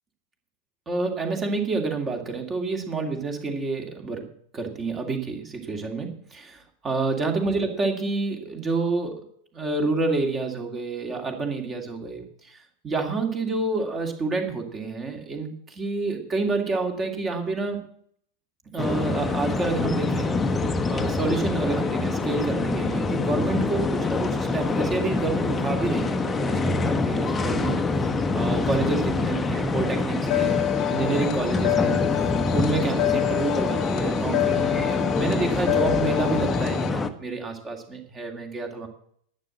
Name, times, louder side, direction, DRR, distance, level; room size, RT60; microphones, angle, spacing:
voice 1, 0.9-4.3 4.5-9.2 9.5-12.6 12.8-17.8 18.7-20.3 20.9-27.7 28.3-30.6 30.9-38.9, right 3 dB, 20° right, 4 dB, 2.3 m, -28 dB
sound 1, 18.8-37.1, left 3 dB, 15° left, 1.0 m, -25 dB
sound 2, 30.3-36.9, left 16 dB, 40° left, 0.6 m, -27 dB
11.5 x 7.7 x 7.6 m, 0.65 s
figure-of-eight pair, 90°, 0 cm